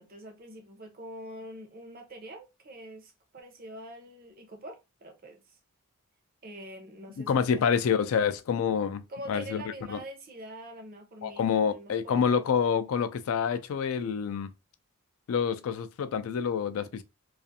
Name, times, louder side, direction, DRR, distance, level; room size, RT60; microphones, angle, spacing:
voice 1, 0.0-5.6 6.4-7.7 9.1-12.4, right 1 dB, 40° right, 0.6 m, -45 dB
voice 2, 7.3-9.0 9.3-9.6 9.9-10.0 11.2-14.5 15.3-17.0, left 7 dB, 65° left, 0.3 m, -27 dB
2.5 x 2.4 x 2.6 m
head